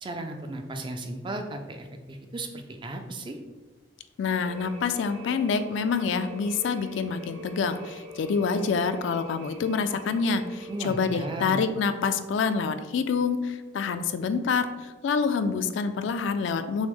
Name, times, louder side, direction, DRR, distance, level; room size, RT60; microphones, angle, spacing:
voice 1, 0.0-3.4 10.7-11.6, right 2 dB, 25° right, 5 dB, 0.3 m, -35 dB
voice 2, 4.2-16.9, left 5 dB, 65° left, 10 dB, 0.3 m, -27 dB
sound 1, 4.5-11.3, equal, 75° right, 1.2 m, -44 dB
6.1 x 2.1 x 3.4 m, 1.3 s
head